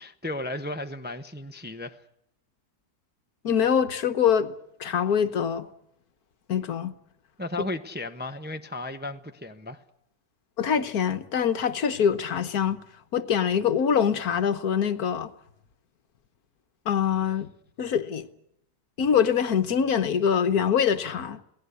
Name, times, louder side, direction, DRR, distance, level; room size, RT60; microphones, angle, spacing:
voice 1, 0.0-2.0 7.4-9.8, left 2 dB, 10° right, 0.8 m, -34 dB
voice 2, 3.4-4.5 4.8-5.7 6.5-6.9 10.6-12.8 13.1-15.3 16.9-17.5 17.8-18.3 19.0-21.4, left 7 dB, 65° left, 1.6 m, -24 dB
27.5 x 18.0 x 8.3 m
omnidirectional pair, 1.7 m